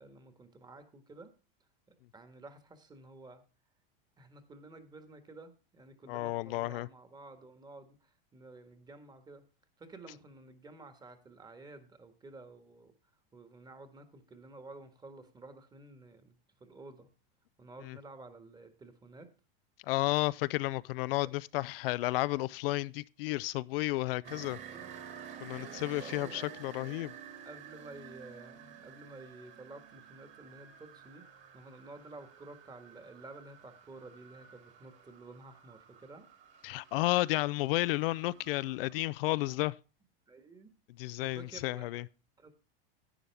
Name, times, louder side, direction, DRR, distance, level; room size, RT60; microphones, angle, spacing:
voice 1, 0.0-1.3 2.1-3.4 4.2-9.4 9.8-12.9 13.3-17.1 17.6-19.3 24.4-25.0 25.5-26.5 27.4-31.3 31.5-36.3 39.4-39.7 40.3-40.7 41.2-41.9 42.4-42.5, right 2 dB, 15° right, 1.6 m, -52 dB
voice 2, 6.1-6.9 17.9-18.0 19.8-24.6 25.4-27.1 36.6-39.7 41.0-42.0, left 19 dB, 70° left, 0.5 m, -32 dB
sound 1, 24.2-39.0, right 8 dB, 40° right, 2.5 m, -51 dB
11.0 x 9.3 x 3.4 m
supercardioid pair, 135°, 30 cm